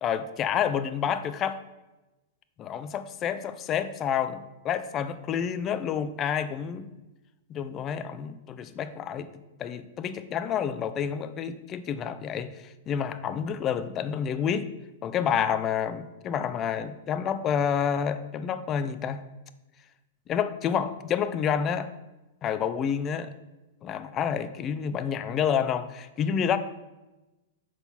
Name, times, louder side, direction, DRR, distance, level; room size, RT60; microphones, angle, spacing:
voice 1, 0.0-1.6 2.6-6.9 7.5-9.3 9.6-14.7 15.0-19.2 20.3-21.9 22.4-23.3 23.8-26.6, left 8 dB, 25° left, 11 dB, 0.4 m, -29 dB
6.1 x 3.9 x 5.7 m, 1.1 s
supercardioid pair, 155°, 0 cm